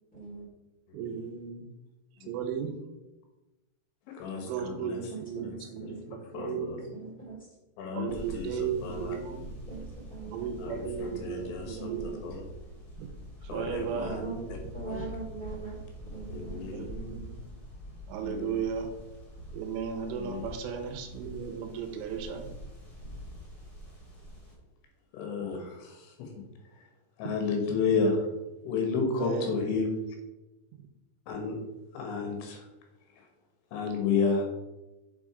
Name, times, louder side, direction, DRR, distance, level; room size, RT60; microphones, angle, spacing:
voice 1, 0.1-0.5 5.1-6.0 6.9-7.4 9.7-9.8 10.1-10.6 11.8-12.1 14.0-14.4 14.7-15.8 16.1-16.7, right 4 dB, 5° left, -6 dB, 1.6 m, -41 dB
voice 2, 0.9-1.7 2.2-2.7 4.4-6.9 7.9-9.5 10.3-12.2 13.0-13.1 13.4-14.7 16.7-17.5 18.1-18.9 19.5-22.5 27.3-27.4 29.0-29.6, right 7 dB, 80° right, 5 dB, 3.3 m, -35 dB
voice 3, 4.1-5.0 5.3-5.6 5.8-5.9 6.3-6.8 7.8-9.2 10.6-12.4 13.5-14.2 14.9-15.0 16.3-16.9 18.2-18.6 20.2-20.5 25.1-26.3 27.2-28.3 28.7-30.0 31.3-31.6 31.9-32.7 33.7-34.5, left 4 dB, 75° left, 3 dB, 3.6 m, -32 dB
sound 1, 8.1-24.5, equal, 55° left, 1.0 m, -45 dB
7.3 x 6.1 x 4.9 m, 1.0 s
omnidirectional pair, 5.8 m